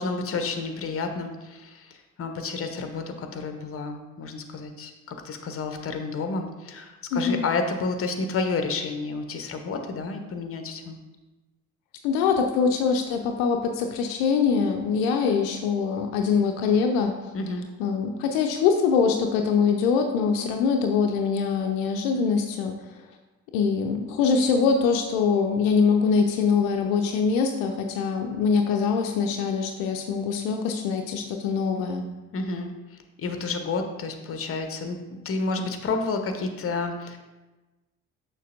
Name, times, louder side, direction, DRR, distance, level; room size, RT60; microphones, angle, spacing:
voice 1, 0.0-10.9 17.3-17.7 32.3-37.2, left 3 dB, 30° left, 6 dB, 0.8 m, -30 dB
voice 2, 7.1-7.5 12.0-17.1 17.8-22.8 23.5-32.1, left 5 dB, 70° left, 3 dB, 0.6 m, -23 dB
6.6 x 6.1 x 2.5 m, 1.1 s
figure-of-eight pair, 50°, 42 cm